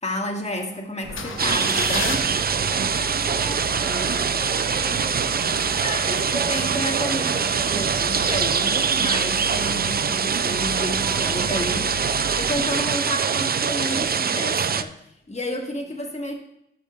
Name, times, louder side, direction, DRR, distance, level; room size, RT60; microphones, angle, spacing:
voice 1, 0.0-2.3 5.8-12.0 12.4-15.0 15.3-16.3, left 1 dB, 35° left, 1 dB, 1.9 m, -30 dB
sound 1, 1.0-13.5 14.0-14.1, left 6 dB, 75° left, 0.6 m, -36 dB
sound 2, 1.0-8.3, right 3 dB, 75° right, 1.2 m, -38 dB
sound 3, 1.4-14.8, right 6 dB, 50° right, 0.4 m, -23 dB
voice 2, 2.7-4.6 15.9-16.0, left 1 dB, 15° left, -1 dB, 1.0 m, -40 dB
12.0 x 7.0 x 2.4 m, 0.78 s
cardioid pair, 40°, 21 cm